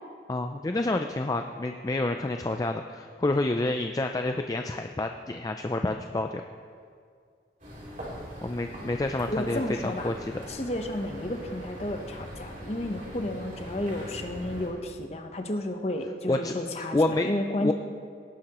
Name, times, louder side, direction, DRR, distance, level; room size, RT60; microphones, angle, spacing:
voice 1, 0.3-6.4 8.4-10.4 16.3-16.5 16.9-17.3 17.6-17.7, left 2 dB, 20° left, 5 dB, 0.3 m, -28 dB
sound 1, 7.6-14.7, equal, 45° right, 3.2 m, -41 dB
voice 2, 9.3-10.1 10.5-17.7, left 1 dB, 35° left, 5 dB, 0.9 m, -32 dB
18.0 x 10.5 x 3.0 m, 2.2 s
head